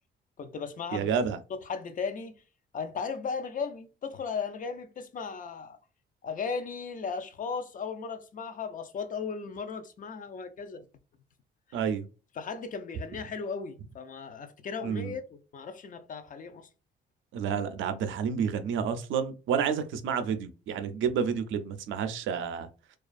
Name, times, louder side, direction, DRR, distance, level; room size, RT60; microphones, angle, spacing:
voice 1, 0.4-1.1 1.5-2.4 2.7-5.8 6.2-10.9 12.4-16.7, left 5 dB, 40° left, 0.4 m, -36 dB
voice 2, 0.9-1.4 11.7-12.0 14.8-15.1 17.3-22.7, right 7 dB, 75° right, 0.4 m, -30 dB
2.4 x 2.3 x 2.4 m
cardioid pair, 90°, 20 cm